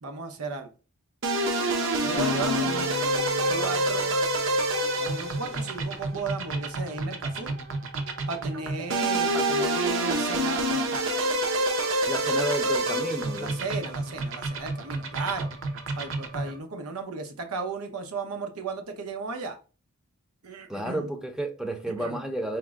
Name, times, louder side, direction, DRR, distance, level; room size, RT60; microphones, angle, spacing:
voice 1, 0.0-0.7 2.0-2.9 3.5-4.2 5.0-7.5 8.3-11.1 13.4-15.5 15.9-19.6 20.4-21.1 22.0-22.2, right 4 dB, 90° right, 0.8 m, -35 dB
sound 1, 1.2-16.6, right 1 dB, 60° right, 0.6 m, -28 dB
sound 2, 2.2-5.3, left 5 dB, 80° left, 0.4 m, -37 dB
voice 2, 12.1-13.6 20.7-22.6, right 1 dB, 5° right, 0.5 m, -31 dB
4.4 x 2.1 x 3.5 m
head